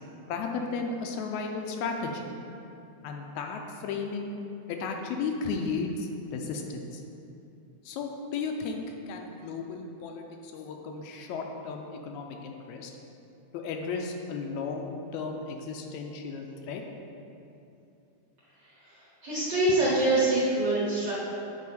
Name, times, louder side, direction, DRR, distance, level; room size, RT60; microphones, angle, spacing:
voice 1, 0.3-2.3 3.0-4.3 4.7-7.0 7.9-12.9 13.5-16.8, left 4 dB, 80° left, 2 dB, 1.9 m, -34 dB
voice 2, 18.6-21.1, right 2 dB, 50° right, -8 dB, 1.3 m, -25 dB
8.3 x 4.9 x 4.2 m, 2.8 s
omnidirectional pair, 3.4 m